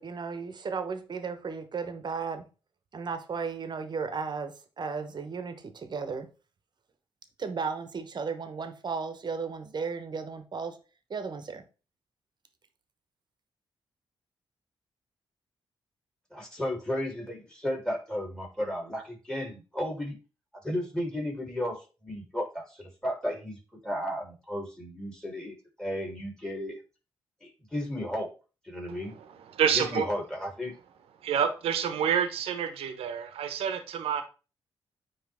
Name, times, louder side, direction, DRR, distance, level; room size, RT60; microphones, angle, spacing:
voice 1, 0.0-2.5 2.9-6.3 7.4-10.8 11.1-11.6, right 5 dB, 50° right, 1.1 m, -35 dB
voice 2, 16.3-20.2 20.6-26.8 27.4-28.3 28.6-29.1 29.7-30.7, left 1 dB, 5° left, 3.4 m, -34 dB
voice 3, 28.9-30.1 31.2-34.2, right 8 dB, 85° right, 1.0 m, -28 dB
9.3 x 3.2 x 3.6 m
cardioid pair, 60°, 10 cm